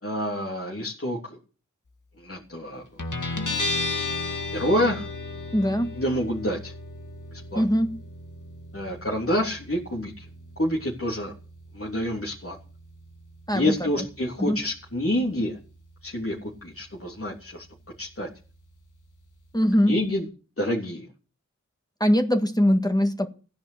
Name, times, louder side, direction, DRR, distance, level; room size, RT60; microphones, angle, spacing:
voice 1, 0.0-1.4 2.2-3.0 4.5-5.0 6.0-6.7 7.3-7.6 8.7-10.3 10.6-11.3 11.7-12.6 13.5-15.6 16.0-17.6 18.0-18.3 19.9-20.2 20.6-21.1, left 1 dB, 45° left, 3.4 m, -27 dB
Guitar, 3.0-20.2, left 2 dB, 75° left, 2.1 m, -37 dB
voice 2, 5.5-5.9 7.5-7.9 13.5-14.0 14.4-14.6 19.5-20.0 22.0-23.3, equal, 15° left, 1.7 m, -22 dB
16.0 x 10.5 x 8.0 m
wide cardioid pair, 55°, 31 cm